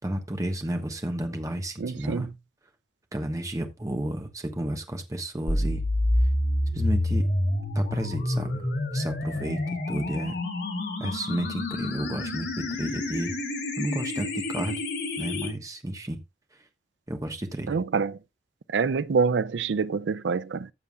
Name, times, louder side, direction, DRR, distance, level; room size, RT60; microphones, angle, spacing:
voice 1, 0.0-2.3 3.1-5.8 6.7-7.3 7.7-10.4 11.0-13.3 13.8-14.8 15.2-16.2 17.1-17.8, right 1 dB, 20° right, 1.2 m, -32 dB
voice 2, 1.8-2.3 17.7-18.2 18.7-20.7, right 5 dB, 85° right, 0.5 m, -26 dB
sound 1, 5.5-15.5, left 1 dB, 75° left, 3.6 m, -28 dB
15.0 x 6.9 x 2.3 m
head